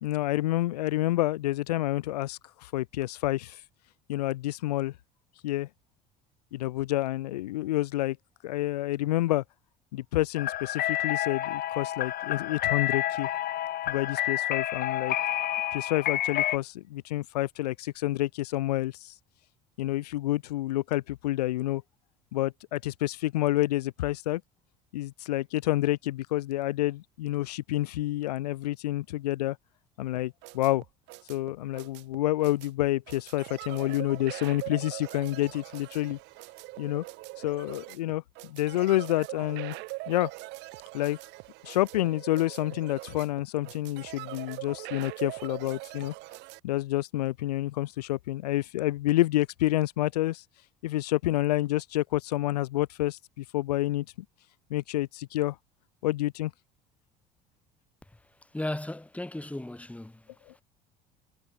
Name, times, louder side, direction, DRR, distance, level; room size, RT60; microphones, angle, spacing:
voice 1, 0.0-3.6 4.1-4.9 5.4-5.7 6.5-8.2 8.4-9.4 9.9-13.3 13.9-15.1 15.7-19.1 19.8-21.8 22.3-24.4 24.9-29.6 30.0-30.8 31.3-36.2 36.8-37.0 37.4-39.7 40.1-40.3 40.9-41.2 41.6-46.1 46.6-50.4 50.8-54.0 54.7-55.5 56.0-56.5 60.5-60.6, left 16 dB, 70° left, 3.3 m, -28 dB
sound 1, 10.4-16.6, left 12 dB, 45° left, 6.1 m, -29 dB
sound 2, 30.1-46.6, right 23 dB, 55° right, 5.1 m, -42 dB
voice 2, 58.5-60.6, left 1 dB, 5° left, 4.6 m, -36 dB
figure-of-eight pair, 60°, 21 cm